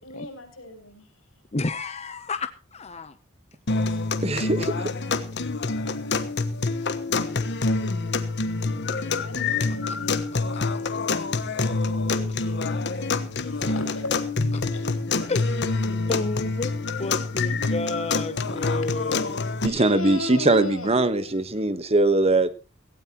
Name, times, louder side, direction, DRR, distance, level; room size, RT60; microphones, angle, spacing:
voice 1, 0.0-1.1 3.8-4.1 8.4-11.1 11.8-13.1 13.4-14.8 15.1-15.6 18.4-19.2 19.7-21.3, left 1 dB, 85° left, 5 dB, 5.9 m, -38 dB
voice 2, 1.5-3.2 10.3-10.4 15.3-19.5, left 3 dB, 30° left, 10 dB, 0.8 m, -31 dB
sound 1, 3.7-19.7, left 3 dB, 60° left, 1.3 m, -26 dB
voice 3, 4.2-4.7 19.6-22.5, right 2 dB, 30° right, 12 dB, 1.2 m, -21 dB
17.0 x 16.5 x 3.0 m, 0.32 s
head